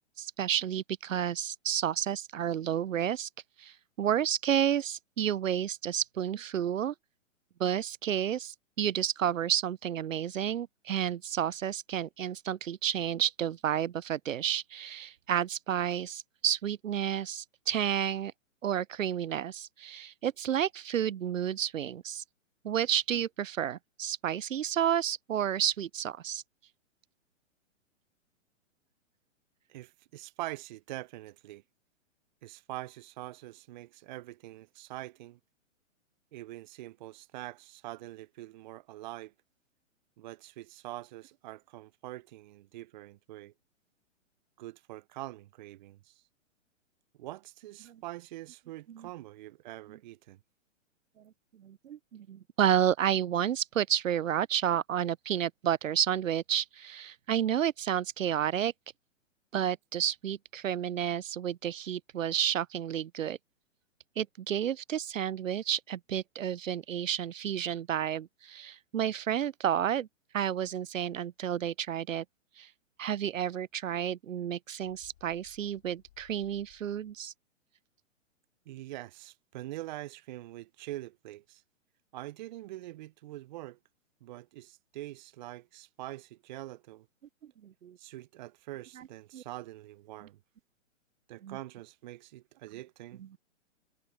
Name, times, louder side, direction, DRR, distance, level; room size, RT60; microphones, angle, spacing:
voice 1, 0.2-3.3 3.6-6.9 7.6-18.3 18.6-22.2 22.6-26.4 48.9-49.1 51.6-58.7 59.5-63.4 64.2-70.1 70.3-72.2 72.6-72.7 73.0-77.3 87.6-88.0 89.3-89.4 91.4-91.6, right 10 dB, 85° right, 0.6 m, -31 dB
voice 2, 29.7-31.6 32.4-35.4 36.3-39.3 40.2-43.5 44.6-46.1 47.2-50.4 78.7-81.6 82.1-83.8 84.2-87.1 88.0-90.4 91.3-93.2, right 16 dB, 40° right, 0.5 m, -44 dB
Bird, 74.8-77.3, left 13 dB, 55° left, 4.8 m, -62 dB
hypercardioid pair, 125°, 38 cm